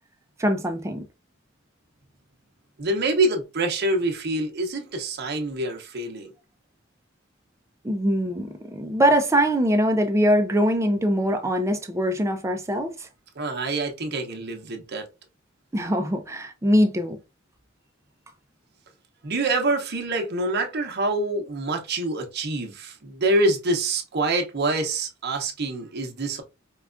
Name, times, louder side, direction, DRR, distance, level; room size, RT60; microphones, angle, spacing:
voice 1, 0.4-1.0 7.8-13.1 15.7-17.2, equal, 15° right, 0.5 m, -22 dB
voice 2, 2.8-6.3 13.4-15.1 19.2-26.4, right 2 dB, 55° right, 0.8 m, -26 dB
4.6 x 2.3 x 2.5 m
head